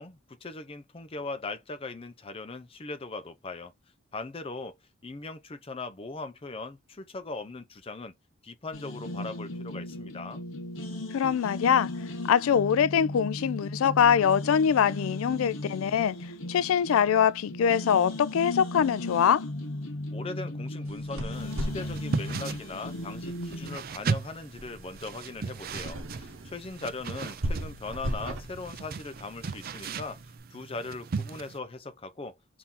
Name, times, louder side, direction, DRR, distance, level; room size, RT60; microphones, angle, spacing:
voice 1, 0.0-3.7 4.1-4.8 5.0-8.1 8.4-10.4 20.1-30.2 30.5-32.4, left 3 dB, 30° left, 0.6 m, -39 dB
sound 1, 8.7-23.8, left 1 dB, 70° left, 1.0 m, -37 dB
voice 2, 11.1-11.9 12.3-16.2 16.5-19.4, left 8 dB, 90° left, 0.3 m, -23 dB
sound 2, 20.9-30.2, right 1 dB, 75° right, 1.1 m, -39 dB
sound 3, 21.3-31.6, right 4 dB, 45° right, 0.4 m, -37 dB
3.7 x 2.7 x 4.1 m
head